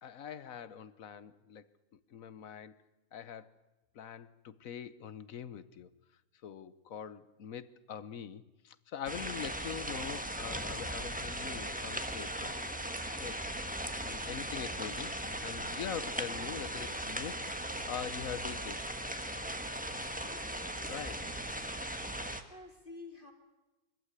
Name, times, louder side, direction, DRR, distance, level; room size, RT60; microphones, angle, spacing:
voice 1, 0.0-1.7 1.9-2.8 3.1-3.5 3.9-5.9 6.4-12.5 13.2-13.4 14.0-15.1 15.4-18.8 20.9-21.3, left 8 dB, 60° left, 15 dB, 1.2 m, -43 dB
sound 1, 9.1-22.4, right 1 dB, 5° right, 1.2 m, -38 dB
voice 2, 20.2-21.4 22.5-23.3, left 2 dB, 30° left, 3 dB, 2.5 m, -51 dB
24.0 x 15.0 x 9.7 m, 1.1 s
omnidirectional pair, 1.8 m